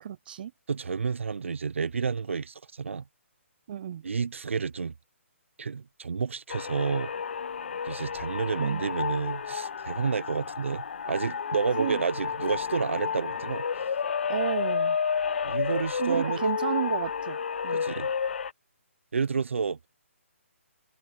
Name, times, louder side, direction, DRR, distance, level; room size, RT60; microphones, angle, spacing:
voice 1, 0.0-0.5 3.7-4.0 8.6-8.9 11.8-12.0 14.3-15.0 16.0-17.4 17.6-17.8, right 10 dB, 40° right, 0.7 m, -32 dB
voice 2, 0.7-3.0 4.0-4.9 5.6-7.1 7.8-13.6 15.4-16.5 17.7-18.1 19.1-19.8, right 5 dB, 65° right, 1.0 m, -30 dB
sound 1, 6.5-18.5, left 6 dB, 55° left, 1.1 m, -31 dB
figure-of-eight pair, 140°, 7 cm